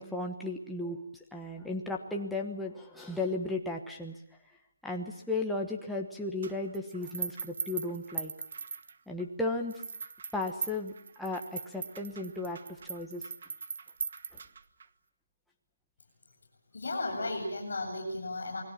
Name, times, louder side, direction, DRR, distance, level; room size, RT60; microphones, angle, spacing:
voice 1, 0.0-4.2 4.8-8.3 9.1-9.7 10.3-12.6 12.8-13.2, left 2 dB, ahead, -1 dB, 1.2 m, -35 dB
sound 1, 6.4-9.2 9.7-14.9, right 5 dB, 35° right, 0.9 m, -40 dB
voice 2, 16.7-18.6, left 2 dB, 50° left, -5 dB, 7.3 m, -34 dB
29.0 x 20.0 x 7.4 m, 0.77 s
hypercardioid pair, 180°, 0 cm